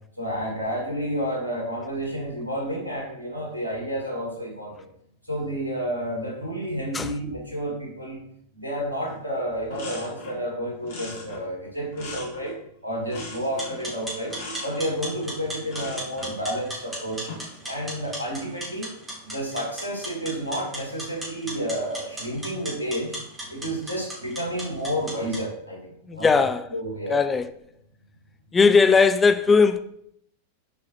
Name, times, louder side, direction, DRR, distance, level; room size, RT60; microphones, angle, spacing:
voice 1, 0.2-4.7 5.3-8.2 8.6-12.6 12.8-14.4 14.6-17.3 17.6-18.9 19.3-23.2 23.5-27.2, equal, 85° right, 1.9 m, -30 dB
sound 1, 9.1-9.2 9.5-10.4 10.8-12.7 13.1-13.8 14.3-14.8 15.7-16.4 17.1-17.6, left 2 dB, 50° left, 1.9 m, -39 dB
sound 2, 13.4-25.4, right 1 dB, 15° right, 2.6 m, -37 dB
voice 2, 26.1-26.6 27.1-27.5 28.5-29.8, left 5 dB, 15° left, 0.3 m, -18 dB
7.0 x 4.7 x 2.9 m
figure-of-eight pair, 90°, 0 cm